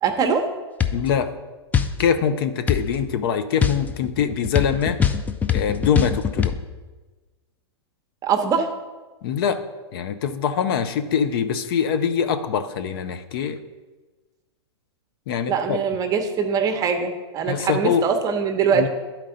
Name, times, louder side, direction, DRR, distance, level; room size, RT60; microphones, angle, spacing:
voice 1, 0.0-0.5 8.2-8.7 15.5-18.9, right 6 dB, 25° right, 5 dB, 0.8 m, -22 dB
sound 1, 0.8-1.0 1.7-2.0 2.7-2.9 3.6-6.5, left 8 dB, 10° left, 0.3 m, -22 dB
voice 2, 0.9-1.4 2.0-5.0 5.5-6.5 9.2-9.7 9.9-13.6 15.3-15.8 17.5-18.1 18.7-18.9, left 7 dB, 60° left, 10 dB, 0.6 m, -23 dB
11.0 x 4.5 x 3.8 m, 1.3 s
hypercardioid pair, 120°, 14 cm